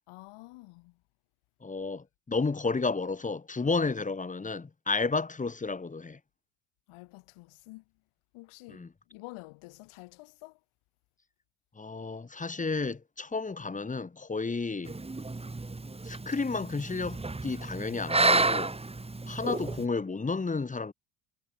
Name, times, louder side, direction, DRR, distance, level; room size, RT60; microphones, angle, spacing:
voice 1, 0.1-1.0 6.9-7.8 8.3-10.6, left 22 dB, 85° left, 5.3 m, -49 dB
voice 2, 1.6-6.2 8.7-8.9 11.8-15.0 16.0-18.8 19.3-20.9, left 4 dB, 15° left, 1.3 m, -32 dB
sound 1, 14.9-19.8, right 3 dB, 10° right, 2.4 m, -30 dB
cardioid pair, 105°, 49 cm